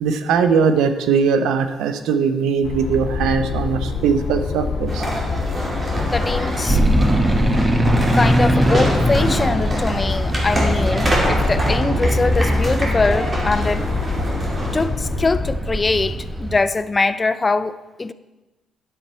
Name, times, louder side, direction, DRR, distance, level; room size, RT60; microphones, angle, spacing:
voice 1, 0.0-5.0, right 6 dB, 90° right, 0.7 m, -20 dB
sound 1, 2.6-15.5, left 5 dB, 60° left, 1.9 m, -26 dB
sound 2, 4.9-14.9, right 1 dB, 30° right, 2.8 m, -26 dB
voice 2, 6.1-6.8 8.1-13.9 14.7-18.1, left 3 dB, 25° left, 0.4 m, -22 dB
sound 3, 6.7-16.6, right 1 dB, 15° right, 0.9 m, -21 dB
10.0 x 7.4 x 4.4 m
cardioid pair, 90°, 0 cm